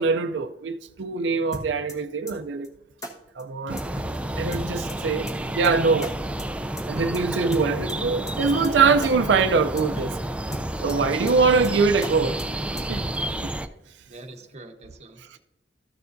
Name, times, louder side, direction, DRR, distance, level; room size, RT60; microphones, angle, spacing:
voice 1, 0.0-2.7 3.4-3.9 4.4-6.1 6.9-10.1 10.8-12.4 12.9-13.0 15.3-15.4, right 4 dB, 80° right, 0.4 m, -23 dB
sound 1, 1.5-2.0 2.3-2.4 2.6-2.7 3.0-3.1 3.4-3.5 3.8-4.2 4.5-5.0 5.3-5.4 5.6-5.7 6.0-6.1 6.4-6.5 6.8-7.2 7.5-8.0 8.3-8.4 8.6-8.7 9.0-9.1 9.4-9.5 9.8-10.2 10.5-11.0 11.3-11.4 11.6-11.7 12.0-12.1 12.4-12.5 12.8-13.2, equal, 20° left, 1.2 m, -35 dB
sound 2, 3.7-13.7, right 1 dB, 5° right, 0.4 m, -30 dB
voice 2, 14.1-15.4, right 2 dB, 40° right, 0.9 m, -45 dB
14.0 x 6.8 x 2.6 m
head